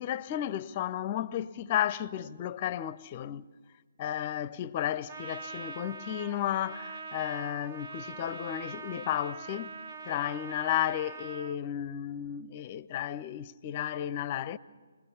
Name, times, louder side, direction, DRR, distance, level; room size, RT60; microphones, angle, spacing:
voice 1, 0.0-3.4 4.0-9.7 10.0-14.6, left 11 dB, 35° left, 0.5 m, -33 dB
Trumpet, 5.1-11.6, right 4 dB, 45° right, 0.7 m, -43 dB
27.0 x 20.0 x 5.5 m
figure-of-eight pair, 140°, 0 cm